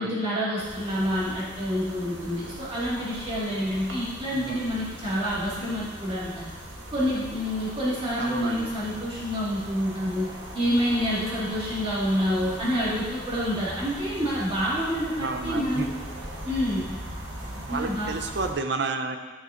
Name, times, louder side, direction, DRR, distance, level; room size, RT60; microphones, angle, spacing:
voice 1, 0.0-6.5 6.9-10.3 10.5-15.9 16.4-16.8 17.7-18.1, equal, 30° right, -8 dB, 2.0 m, -27 dB
sound 1, 0.6-18.5, right 1 dB, 85° right, 1.2 m, -40 dB
voice 2, 4.3-4.7 8.2-8.7 15.1-15.9 17.7-19.2, right 3 dB, 65° right, 6 dB, 0.6 m, -31 dB
9.6 x 6.1 x 2.6 m, 1.3 s
head